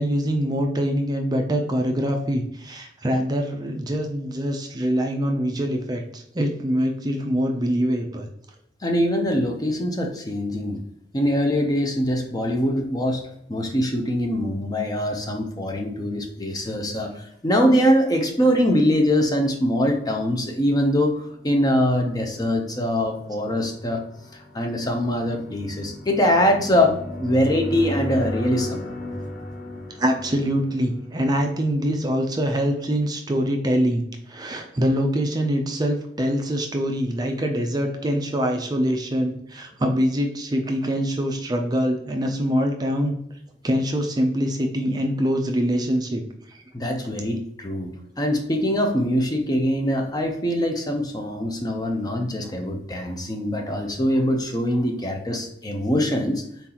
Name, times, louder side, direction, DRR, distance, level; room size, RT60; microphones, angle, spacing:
voice 1, 0.0-8.3 30.0-43.2 43.6-46.2 46.5-46.6, equal, 20° right, 4 dB, 0.4 m, -24 dB
voice 2, 8.8-10.8 11.1-24.0 24.3-28.8 46.7-56.4, equal, 20° left, 3 dB, 0.6 m, -23 dB
sound 1, 21.4-32.0, left 1 dB, 70° left, 1.2 m, -35 dB
4.1 x 3.8 x 2.9 m, 0.75 s
head